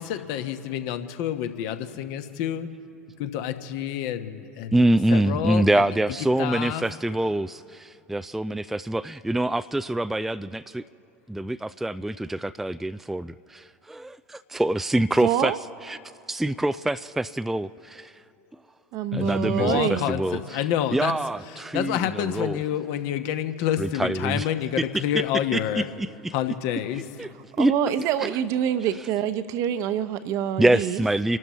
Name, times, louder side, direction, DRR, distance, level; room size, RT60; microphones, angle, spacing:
voice 1, 0.0-2.7 3.2-4.8 5.1-5.8 6.4-6.8 19.1-21.1 21.7-25.9 26.3-27.0, left 10 dB, 50° left, 8 dB, 1.1 m, -28 dB
voice 2, 4.7-10.8 11.3-15.5 15.8-16.0 16.3-18.2 19.1-20.6 20.9-22.6 23.8-24.5 25.5-26.3 26.9-27.3 27.6-27.7 28.2-28.4 30.6-31.4, right 1 dB, 5° right, 12 dB, 0.3 m, -25 dB
voice 3, 15.2-15.6 18.9-20.1 27.6-31.0, right 9 dB, 45° right, 11 dB, 0.9 m, -26 dB
29.5 x 12.0 x 3.1 m, 2.7 s
figure-of-eight pair, 80°, 8 cm